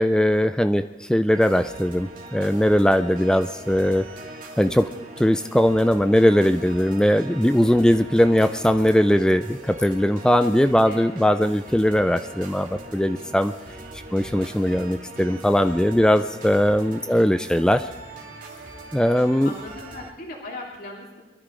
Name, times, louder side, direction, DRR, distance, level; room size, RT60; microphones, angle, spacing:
voice 1, 0.0-4.0 4.6-4.9 5.2-13.5 14.1-17.8 18.9-19.5, equal, 5° left, 9 dB, 0.4 m, -20 dB
sound 1, 1.3-20.1, right 2 dB, 50° right, 2.5 m, -41 dB
voice 2, 10.8-11.2 14.1-14.2 17.0-17.2 19.4-21.2, left 2 dB, 55° left, -2 dB, 2.7 m, -39 dB
23.5 x 13.0 x 3.8 m, 1.2 s
head